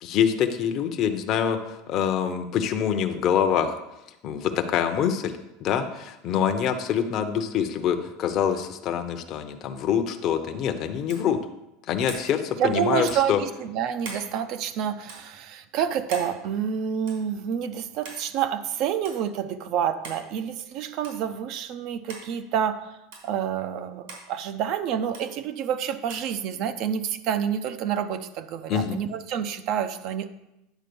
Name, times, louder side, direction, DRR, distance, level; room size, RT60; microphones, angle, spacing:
voice 1, 0.0-3.8 4.2-11.4 11.9-13.4 28.7-29.0, left 8 dB, 40° left, 6 dB, 0.7 m, -25 dB
sound 1, 11.1-11.3 12.1-12.3 13.1-13.3 14.0-14.3 15.0-15.2 16.1-16.3 17.1-17.3 18.0-18.2 19.0-19.2 20.0-20.2 21.0-21.2 22.1-22.3 23.1-23.3 24.1-24.3 25.1-25.3 26.1-26.3, right 3 dB, 75° right, 3.6 m, -40 dB
voice 2, 12.6-23.0 23.2-30.5, right 8 dB, 50° right, 10 dB, 0.5 m, -28 dB
9.2 x 4.3 x 6.8 m, 0.90 s
supercardioid pair, 150°, 0 cm